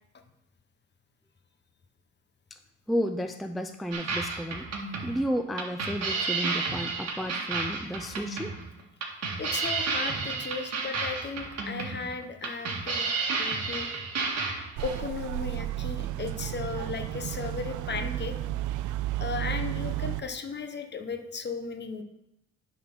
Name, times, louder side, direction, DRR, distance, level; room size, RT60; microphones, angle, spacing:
voice 1, 2.9-4.7 5.0-8.5 12.9-13.1, equal, ahead, 6 dB, 0.5 m, -32 dB
sound 1, 3.9-15.0, right 4 dB, 60° right, 1.9 m, -31 dB
voice 2, 9.4-13.1 13.4-13.9 14.8-18.4 19.2-22.0, left 5 dB, 35° left, 7 dB, 1.0 m, -35 dB
sound 2, 14.8-20.2, right 14 dB, 80° right, 0.5 m, -32 dB
9.2 x 4.2 x 6.0 m, 0.89 s
cardioid pair, 90°, 30 cm